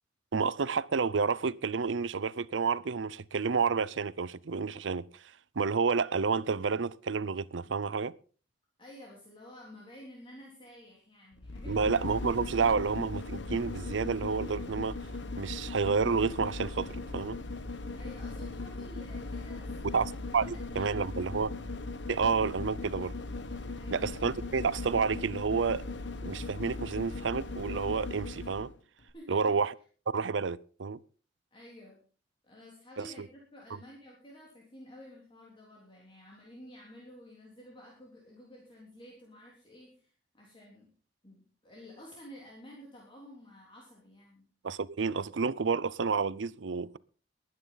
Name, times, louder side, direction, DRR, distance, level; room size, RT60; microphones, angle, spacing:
voice 1, 0.3-5.1 5.6-8.1 11.7-15.0 15.4-17.4 19.9-21.5 22.1-23.1 23.9-25.8 26.2-28.7 29.3-29.7 30.1-31.0 33.0-33.3 44.6-47.0, right 5 dB, 90° right, 0.6 m, -30 dB
voice 2, 8.8-12.0 17.9-20.0 20.3-21.0 23.7-24.1 29.1-29.5 31.5-32.0 32.4-40.9 41.2-44.5, left 1 dB, 30° left, 3.6 m, -52 dB
sound 1, 11.3-28.7 29.1-29.2, left 3 dB, 70° left, 1.2 m, -39 dB
22.5 x 9.6 x 4.0 m
head